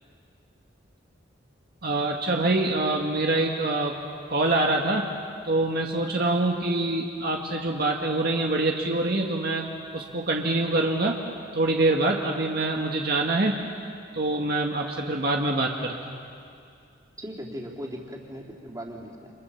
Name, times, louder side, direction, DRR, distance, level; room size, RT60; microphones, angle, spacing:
voice 1, 1.8-3.9 4.3-5.1 5.4-9.7 9.9-11.2 11.5-13.6 14.1-16.2, right 2 dB, 55° right, 0 dB, 1.8 m, -25 dB
voice 2, 17.2-19.3, equal, 20° right, -2 dB, 3.5 m, -38 dB
30.0 x 27.5 x 7.2 m, 2.4 s
head